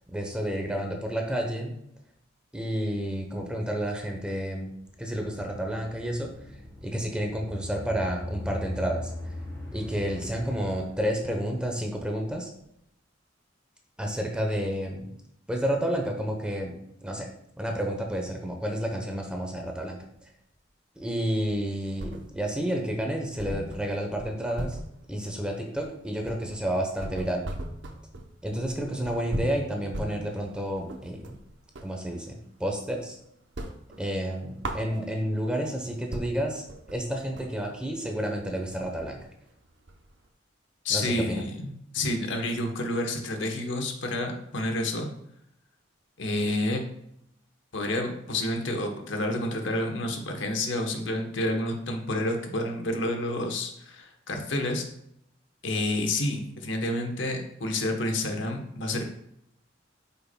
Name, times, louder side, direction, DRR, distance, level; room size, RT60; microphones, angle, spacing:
voice 1, 0.1-1.8 2.5-6.5 6.8-9.1 9.7-12.5 14.0-15.1 15.5-17.3 17.6-20.0 21.0-24.8 25.1-27.5 28.4-31.4 31.8-33.2 34.0-39.2 40.9-41.4, equal, 5° right, 2 dB, 0.8 m, -30 dB
sound 1, 4.6-11.5, left 1 dB, 15° left, 2.6 m, -40 dB
sound 2, 21.5-22.6 22.9-23.0 23.4-32.0 32.4-33.1 33.4-35.4 35.8-35.9 36.1-40.3, right 1 dB, 65° right, 0.7 m, -39 dB
voice 2, 40.8-45.1 46.2-46.8 47.7-54.8 55.6-59.0, left 1 dB, 70° left, 4 dB, 1.0 m, -29 dB
8.3 x 5.6 x 2.2 m, 0.74 s
head